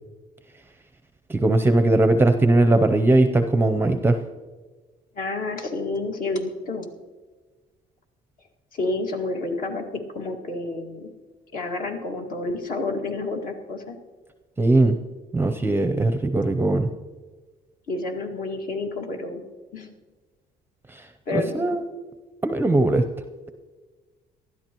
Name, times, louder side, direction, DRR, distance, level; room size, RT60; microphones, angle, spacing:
voice 1, 1.3-4.2 14.6-14.9 15.3-16.9 20.9-21.0 21.3-21.8 22.4-23.0, right 2 dB, 15° right, 7 dB, 0.6 m, -19 dB
voice 2, 5.2-6.9 8.7-11.1 11.5-14.0 17.9-19.4 19.7-19.9 21.3-21.6, left 2 dB, 55° left, 2 dB, 2.0 m, -29 dB
19.0 x 12.5 x 3.0 m, 1.3 s
cardioid pair, 110°, 17 cm